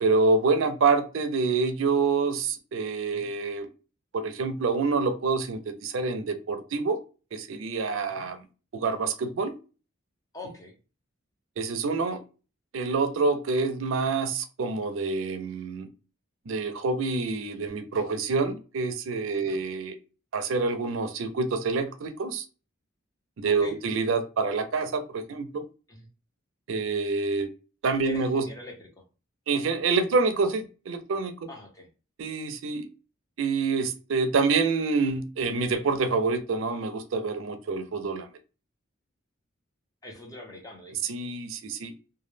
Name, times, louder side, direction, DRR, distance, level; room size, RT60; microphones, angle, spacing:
voice 1, 0.0-3.7 4.1-7.0 7.3-8.4 8.7-9.5 11.6-12.2 12.7-15.9 16.5-20.0 20.3-22.4 23.4-25.6 26.7-27.5 27.8-28.5 29.5-31.5 32.2-32.9 33.4-38.3 41.0-41.9, right 4 dB, 75° right, 8 dB, 0.4 m, -27 dB
voice 2, 10.3-10.8 19.4-19.6 23.5-23.8 25.9-26.1 28.0-29.0 31.5-31.9 40.0-41.0, left 2 dB, 20° left, 1 dB, 0.6 m, -43 dB
2.2 x 2.0 x 3.1 m, 0.34 s
head